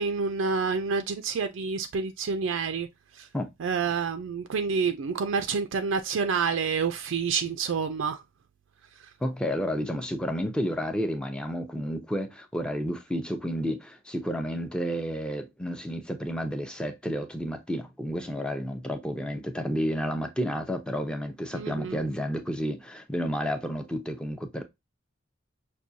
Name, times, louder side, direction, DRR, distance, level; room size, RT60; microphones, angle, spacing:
voice 1, 0.0-2.9 3.1-3.3 3.6-8.2 21.5-22.0, right 5 dB, 70° right, 0.4 m, -28 dB
voice 2, 9.2-24.6, equal, 5° left, 0.6 m, -31 dB
6.0 x 2.3 x 2.6 m
head